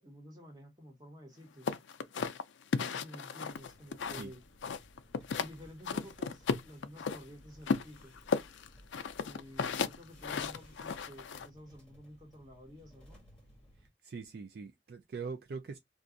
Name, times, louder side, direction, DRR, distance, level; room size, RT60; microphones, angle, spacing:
voice 1, 0.0-1.8 2.7-4.4 5.3-8.2 9.2-13.2, equal, 20° right, 1.2 m, -51 dB
sound 1, 1.7-4.3 4.6-5.5 5.8-7.2 7.7-11.5, left 5 dB, 80° left, 0.4 m, -34 dB
sound 2, 3.5-13.9, equal, 5° left, 1.2 m, -60 dB
voice 2, 14.0-15.8, right 4 dB, 55° right, 0.4 m, -42 dB
2.5 x 2.4 x 3.8 m
head